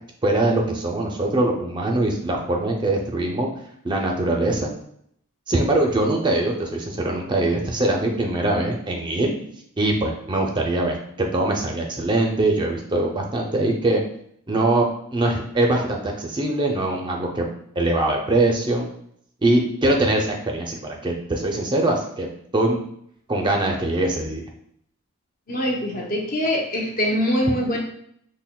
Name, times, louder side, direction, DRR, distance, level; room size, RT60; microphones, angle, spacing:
voice 1, 0.2-3.5 3.8-4.7 5.5-9.3 9.8-14.0 14.5-17.5 17.8-18.9 19.4-22.3 22.5-22.8 23.3-24.4, right 2 dB, 20° right, 1 dB, 0.4 m, -22 dB
voice 2, 25.5-27.8, equal, 40° left, 0 dB, 0.7 m, -23 dB
5.6 x 2.1 x 2.2 m, 0.68 s
head